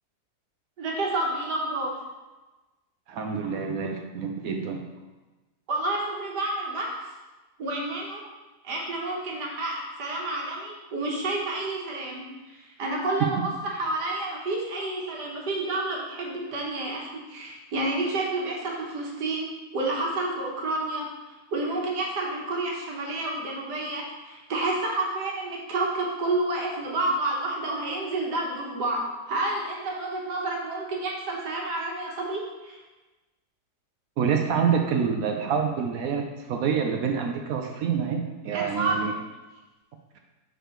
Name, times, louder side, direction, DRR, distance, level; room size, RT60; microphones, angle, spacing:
voice 1, 0.8-1.9 5.7-7.0 7.6-8.2 8.6-32.8 38.5-39.1, right 2 dB, 85° right, -2 dB, 1.7 m, -30 dB
voice 2, 3.1-4.8 34.2-39.1, right 6 dB, 70° right, 3 dB, 0.9 m, -27 dB
6.5 x 5.0 x 3.0 m, 1.2 s
omnidirectional pair, 1.8 m